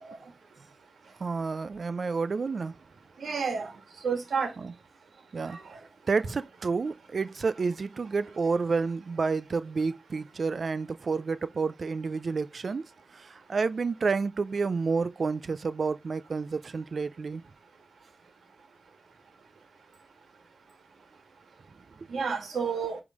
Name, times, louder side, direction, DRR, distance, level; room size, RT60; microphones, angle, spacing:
voice 1, 1.2-2.7 4.6-4.7 5.3-5.6 6.1-12.8 13.2-17.4, right 4 dB, 65° right, 0.5 m, -30 dB
voice 2, 3.2-3.7 4.0-4.5 5.5-5.6 22.1-23.0, right 5 dB, 90° right, 1.7 m, -30 dB
9.5 x 3.7 x 4.8 m
cardioid pair, 50°, 0 cm